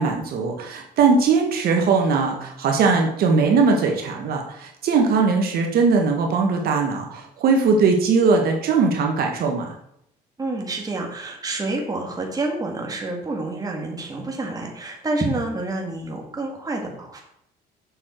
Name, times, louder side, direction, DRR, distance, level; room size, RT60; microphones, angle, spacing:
voice 1, 0.0-9.7, right 4 dB, 65° right, 2 dB, 1.3 m, -20 dB
voice 2, 10.4-17.2, right 2 dB, 20° right, 1 dB, 2.0 m, -28 dB
7.2 x 6.5 x 4.4 m, 0.75 s
cardioid pair, 110°, 17 cm